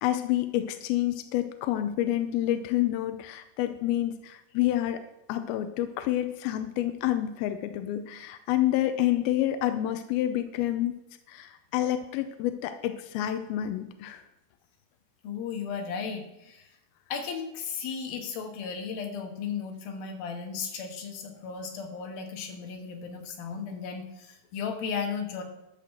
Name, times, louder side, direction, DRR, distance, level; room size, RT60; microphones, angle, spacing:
voice 1, 0.0-5.0 5.3-10.9 11.3-14.2, left 13 dB, 80° left, 9 dB, 2.2 m, -28 dB
voice 2, 15.2-16.7 17.1-25.4, left 6 dB, 65° left, 3 dB, 3.0 m, -35 dB
13.0 x 6.2 x 6.7 m, 0.89 s
omnidirectional pair, 5.0 m